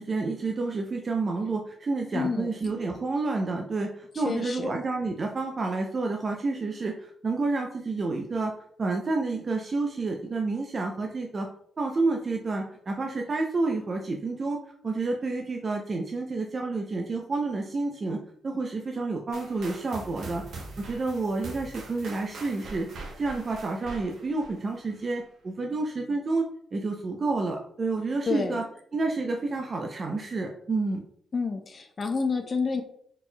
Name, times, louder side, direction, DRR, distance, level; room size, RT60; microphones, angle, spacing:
voice 1, 0.0-8.5 8.8-11.5 11.8-14.6 14.8-22.9 23.2-26.4 26.7-28.7 28.9-31.0, right 3 dB, 45° right, 2 dB, 0.5 m, -29 dB
voice 2, 2.1-2.5 4.1-4.7 28.3-28.6 31.3-32.8, left 4 dB, 50° left, 5 dB, 0.5 m, -29 dB
sound 1, 19.3-25.2, right 3 dB, 75° right, 1.0 m, -43 dB
4.2 x 4.2 x 2.3 m, 0.65 s
supercardioid pair, 45°, 0 cm